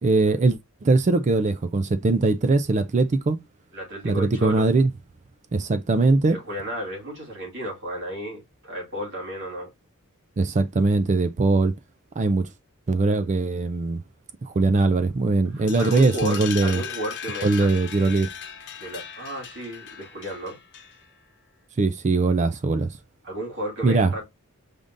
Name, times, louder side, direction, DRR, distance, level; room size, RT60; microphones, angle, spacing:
voice 1, 0.0-3.4 4.0-4.9 5.5-6.4 10.4-11.7 12.2-12.5 12.9-14.0 14.4-16.8 17.4-18.3 21.8-22.9 23.8-24.1, right 3 dB, 35° right, 0.4 m, -21 dB
voice 2, 3.7-4.7 6.3-9.7 15.5-17.8 18.8-20.6 23.2-24.3, equal, 55° right, 2.3 m, -33 dB
sound 1, 15.7-21.2, left 9 dB, 55° left, 0.9 m, -38 dB
5.1 x 3.7 x 2.5 m
head